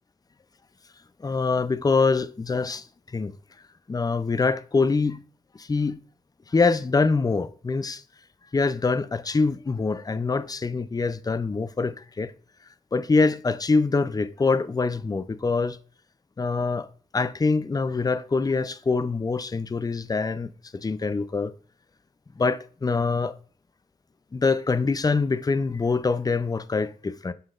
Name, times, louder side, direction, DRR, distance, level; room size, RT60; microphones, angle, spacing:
voice 1, 1.2-3.3 3.9-5.2 5.5-6.0 6.5-8.0 8.5-12.3 12.9-15.8 16.4-16.9 17.1-21.5 22.4-23.3 24.3-27.3, left 4 dB, 25° left, 0.4 m, -24 dB
11.5 x 3.9 x 2.4 m
wide cardioid pair, 85°, 16 cm